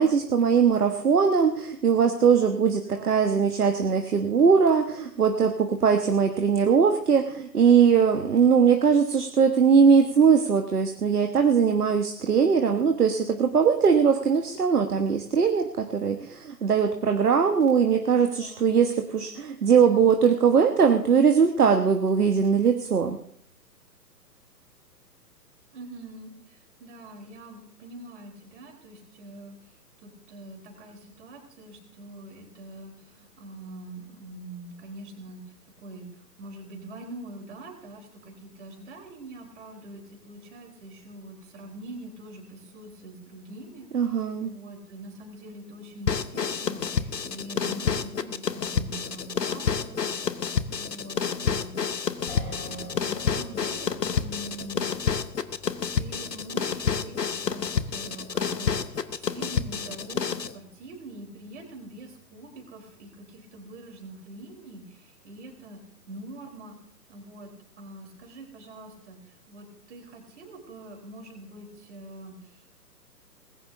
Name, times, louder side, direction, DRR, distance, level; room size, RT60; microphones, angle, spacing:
voice 1, 0.0-23.2 43.9-44.5, right 6 dB, 65° right, 5 dB, 1.4 m, -21 dB
voice 2, 2.9-3.2 18.3-18.7 25.7-35.4 35.8-50.3 50.8-54.9 56.0-65.8 66.1-66.8 67.1-67.5 67.8-72.7, right 1 dB, 45° right, 3 dB, 3.9 m, -44 dB
sound 1, 46.1-60.5, left 6 dB, 75° left, 1.1 m, -29 dB
sound 2, 52.3-64.6, left 3 dB, 35° left, 6.1 m, -50 dB
20.0 x 16.5 x 2.7 m, 0.66 s
figure-of-eight pair, 130°, 49 cm